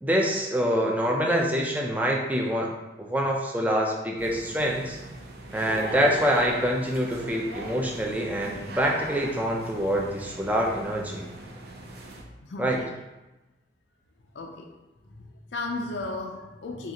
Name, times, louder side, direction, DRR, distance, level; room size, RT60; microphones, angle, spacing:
voice 1, 0.0-5.0 5.5-11.2 12.6-12.8, equal, 10° right, -1 dB, 0.5 m, -25 dB
sound 1, 4.2-12.2, right 2 dB, 60° right, 0.6 m, -40 dB
voice 2, 12.4-12.9 14.3-14.7 15.1-16.9, left 2 dB, 80° left, 2 dB, 0.5 m, -35 dB
5.4 x 2.5 x 2.8 m, 1.0 s
head